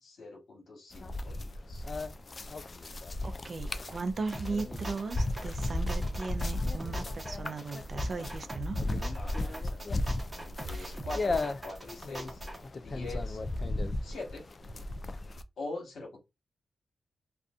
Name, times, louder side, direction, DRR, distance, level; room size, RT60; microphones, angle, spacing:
voice 1, 0.0-1.9 9.1-10.0 10.4-12.4 12.8-13.4 14.0-14.4 15.6-16.2, left 2 dB, 80° left, 1.2 m, -43 dB
sound 1, 0.9-15.4, left 2 dB, 50° left, 0.3 m, -35 dB
voice 2, 3.2-8.8 9.3-9.6 10.7-11.0, right 4 dB, 55° right, 0.4 m, -38 dB
sound 2, 4.3-12.6, right 1 dB, 25° right, 0.9 m, -41 dB
2.5 x 2.4 x 2.3 m
cardioid pair, 50°, 0 cm